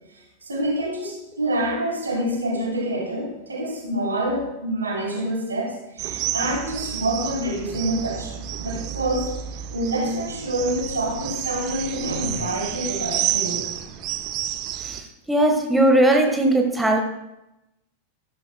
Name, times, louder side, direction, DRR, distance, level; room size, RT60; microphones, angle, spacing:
voice 1, 0.4-9.3 9.7-13.6, right 1 dB, 75° right, -2 dB, 3.7 m, -27 dB
sound 1, 6.0-15.0, right 11 dB, 40° right, 0.9 m, -30 dB
voice 2, 14.8-17.0, right 1 dB, 5° right, 3 dB, 1.4 m, -19 dB
15.0 x 13.0 x 2.2 m, 0.92 s
figure-of-eight pair, 90°, 0 cm